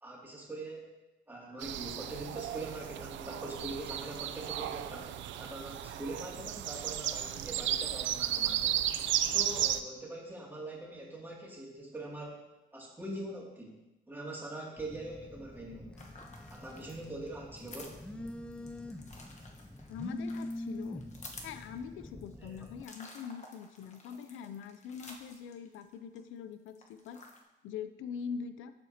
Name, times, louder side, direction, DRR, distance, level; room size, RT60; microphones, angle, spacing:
voice 1, 0.0-0.9 1.3-5.1 5.4-8.8 9.3-12.4 12.7-13.8 14.1-15.9 16.5-18.0 22.4-22.6, right 2 dB, 10° right, -4 dB, 2.3 m, -43 dB
sound 1, 1.6-9.8, right 11 dB, 75° right, 0.4 m, -34 dB
Telephone, 14.8-22.8, left 1 dB, 5° left, 0.4 m, -44 dB
sound 2, 16.0-26.2 26.5-27.4, left 3 dB, 35° left, 1.1 m, -52 dB
voice 2, 19.9-21.0 21.4-27.2 27.6-28.7, left 7 dB, 85° left, 11 dB, 0.4 m, -43 dB
13.0 x 4.3 x 2.8 m, 1.0 s
cardioid pair, 90°, 20 cm